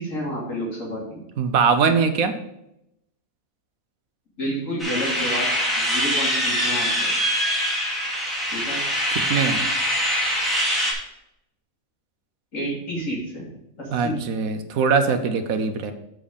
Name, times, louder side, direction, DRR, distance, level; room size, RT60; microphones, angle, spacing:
voice 1, 0.0-1.2 4.4-5.5 5.8-7.1 8.5-8.8 12.5-13.5 13.8-14.2, equal, 65° left, -5 dB, 3.4 m, -30 dB
voice 2, 1.4-2.3 9.3-9.6 13.9-15.9, right 5 dB, 80° right, 8 dB, 1.3 m, -21 dB
sound 1, 4.8-10.9, equal, ahead, 2.5 m, -23 dB
7.5 x 6.3 x 5.1 m, 0.83 s
omnidirectional pair, 1.5 m